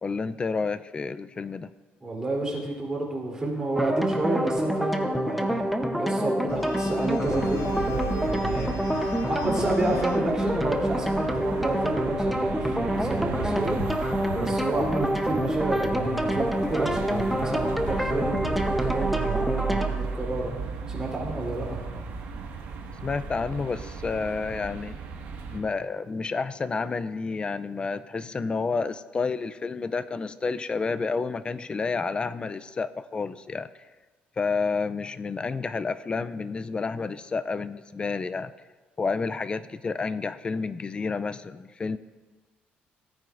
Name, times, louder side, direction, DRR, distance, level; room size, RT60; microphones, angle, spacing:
voice 1, 0.0-1.7 23.0-25.0 25.5-33.7 34.4-38.5 39.0-42.0, left 4 dB, 25° left, 14 dB, 0.4 m, -30 dB
voice 2, 2.0-5.7 6.0-14.1 14.3-20.5 20.9-21.8, right 2 dB, 20° right, -3 dB, 3.3 m, -30 dB
sound 1, 3.7-19.9, equal, ahead, 0.8 m, -27 dB
sound 2, 6.5-11.9, left 6 dB, 80° left, 0.7 m, -41 dB
sound 3, 7.2-25.6, right 5 dB, 80° right, 1.8 m, -35 dB
17.0 x 9.1 x 2.6 m, 1.3 s
cardioid pair, 110°, 4 cm